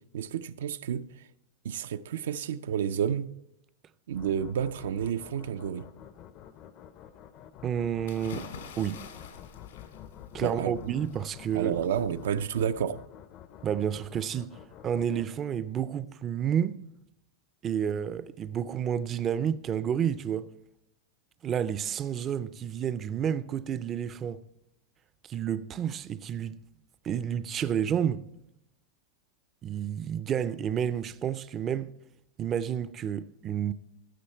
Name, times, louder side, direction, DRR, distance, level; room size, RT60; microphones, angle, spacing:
voice 1, 0.1-1.1 1.6-3.3 4.1-5.9 10.4-10.7 11.5-13.0, right 8 dB, 85° right, 0.5 m, -30 dB
sound 1, 4.1-15.8, left 10 dB, 35° left, 0.5 m, -49 dB
voice 2, 7.6-8.5 8.8-9.0 10.3-11.7 13.6-14.6 14.8-16.8 17.6-20.5 21.4-24.4 25.2-26.6 27.0-28.2 29.6-31.9 32.4-33.7, right 9 dB, 25° right, 0.4 m, -30 dB
sound 2, 8.1-12.9, left 5 dB, 85° left, 2.6 m, -47 dB
15.5 x 6.4 x 4.4 m
supercardioid pair, 150°, 0 cm